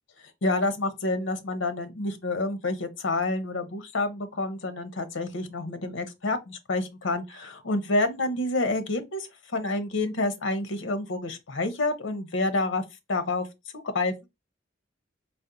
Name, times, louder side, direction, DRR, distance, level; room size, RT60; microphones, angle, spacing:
voice 1, 0.4-12.8 13.1-13.5 13.9-14.1, left 2 dB, 80° left, 0.7 m, -28 dB
4.2 x 2.0 x 3.8 m
head